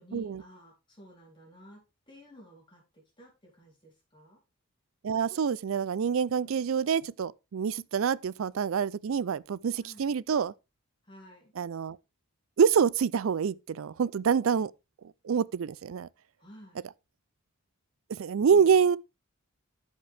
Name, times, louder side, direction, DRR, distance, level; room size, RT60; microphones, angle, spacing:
voice 1, 0.0-4.4 6.4-6.7 9.8-10.1 11.0-11.5 16.4-16.8 18.5-18.6, equal, 20° left, 3.4 m, -53 dB
voice 2, 5.0-10.5 11.6-12.0 12.6-14.7 15.2-16.1 18.1-19.0, right 6 dB, 70° right, 0.4 m, -26 dB
13.0 x 5.2 x 3.4 m
head